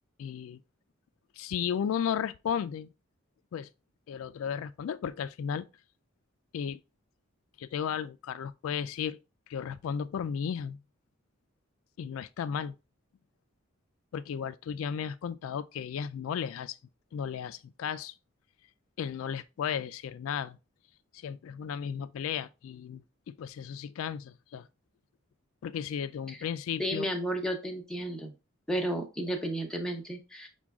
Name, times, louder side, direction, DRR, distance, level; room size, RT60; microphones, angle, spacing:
voice 1, 0.2-0.6 1.4-2.9 3.5-3.7 4.1-5.7 6.5-6.8 7.6-9.2 9.5-10.8 12.0-12.7 14.1-16.8 17.1-18.1 19.0-20.6 21.2-24.7 25.6-27.1, left 8 dB, 75° left, 0.3 m, -34 dB
voice 2, 26.8-28.3 28.7-30.5, right 1 dB, 5° left, 0.8 m, -32 dB
6.0 x 2.2 x 3.5 m
head